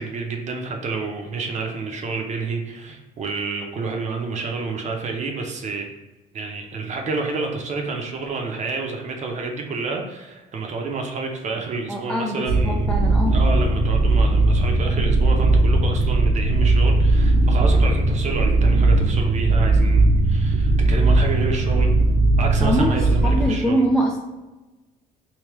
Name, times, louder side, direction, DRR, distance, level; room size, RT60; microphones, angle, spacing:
voice 1, 0.0-5.9 6.3-12.9 13.3-21.9 22.4-23.8, right 4 dB, 45° right, 2 dB, 0.7 m, -29 dB
voice 2, 11.9-13.4 22.6-24.2, equal, 5° left, -1 dB, 0.4 m, -23 dB
sound 1, 12.5-23.4, right 2 dB, 80° right, 0.8 m, -18 dB
3.4 x 2.8 x 3.0 m, 1.1 s
cardioid pair, 110°, 17 cm